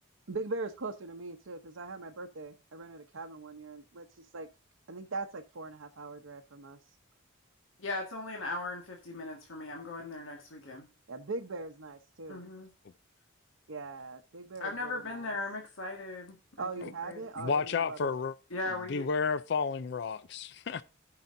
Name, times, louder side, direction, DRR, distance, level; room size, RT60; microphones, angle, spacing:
voice 1, 0.3-4.0 4.3-4.5 4.9-6.8 11.1-12.4 13.7-15.3 16.6-18.2, right 3 dB, 75° right, 0.8 m, -40 dB
voice 2, 7.8-10.9 12.3-12.7 14.6-16.7 17.0-17.2 18.5-19.0, left 2 dB, 75° left, 1.7 m, -38 dB
voice 3, 17.4-18.3 18.9-20.8, left 5 dB, 55° left, 0.4 m, -31 dB
17.0 x 5.8 x 2.6 m
head